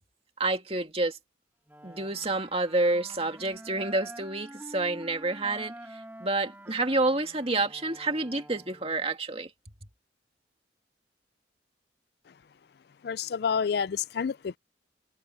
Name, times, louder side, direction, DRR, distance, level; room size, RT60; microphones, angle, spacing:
voice 1, 0.4-1.2 1.8-9.5, right 2 dB, 35° right, 2.3 m, -29 dB
Wind instrument woodwind instrument, 1.7-9.2, right 1 dB, 10° right, 2.2 m, -47 dB
voice 2, 13.0-14.6, left 6 dB, 60° left, 0.4 m, -29 dB
head